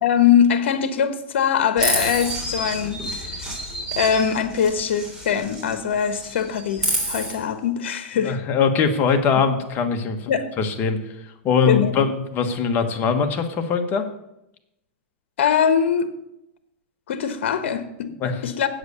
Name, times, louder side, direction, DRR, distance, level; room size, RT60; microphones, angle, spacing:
voice 1, 0.0-3.5 3.9-8.4 10.3-10.5 11.7-11.9 15.4-16.1 17.1-18.1 18.4-18.8, left 8 dB, 75° left, 10 dB, 1.1 m, -22 dB
Chirp tweet, 1.8-5.8 6.1-7.3, right 1 dB, 10° right, 3.3 m, -28 dB
voice 2, 8.2-10.3 10.6-11.0 11.4-14.0 18.2-18.4, left 5 dB, 35° left, 5 dB, 1.4 m, -21 dB
8.2 x 7.9 x 6.7 m, 0.85 s
supercardioid pair, 135°, 6 cm